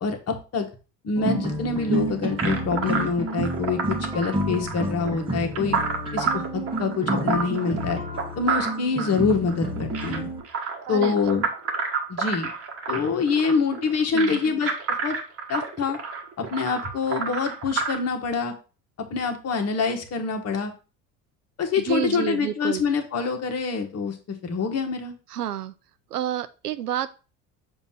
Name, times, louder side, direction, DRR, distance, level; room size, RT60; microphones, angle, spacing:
voice 1, 0.0-0.7 1.0-5.8 6.1-8.0 8.4-10.3 10.9-11.4 12.1-12.5 12.9-14.7 15.0-15.2 15.5-16.0 16.4-18.5 19.1-20.7 21.6-25.1, left 5 dB, 30° left, 5 dB, 1.4 m, -25 dB
sound 1, 1.2-10.4, right 1 dB, 10° right, 1.3 m, -29 dB
sound 2, 2.4-18.0, right 5 dB, 30° right, 1.3 m, -29 dB
voice 2, 10.9-11.3 14.1-14.4 21.8-22.8 25.3-25.7 26.1-27.1, right 11 dB, 75° right, 13 dB, 0.6 m, -29 dB
7.0 x 2.8 x 5.6 m, 0.33 s
figure-of-eight pair, 60°, 46 cm